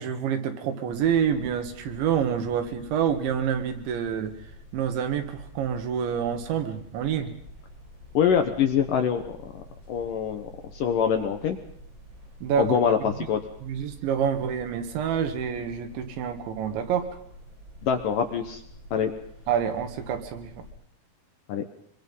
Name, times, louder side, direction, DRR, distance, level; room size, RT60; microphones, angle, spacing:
voice 1, 0.0-4.3 4.7-7.3 12.4-12.8 13.6-17.1 19.5-20.5, right 8 dB, 80° right, 6 dB, 4.2 m, -27 dB
sound 1, 0.9-20.7, equal, 25° right, 6.0 m, -48 dB
voice 2, 8.1-9.5 9.9-11.6 12.6-13.4 17.8-18.6 18.9-19.1 21.5-21.6, left 7 dB, 65° left, 6 dB, 2.3 m, -24 dB
24.5 x 23.0 x 5.6 m, 0.70 s
omnidirectional pair, 5.2 m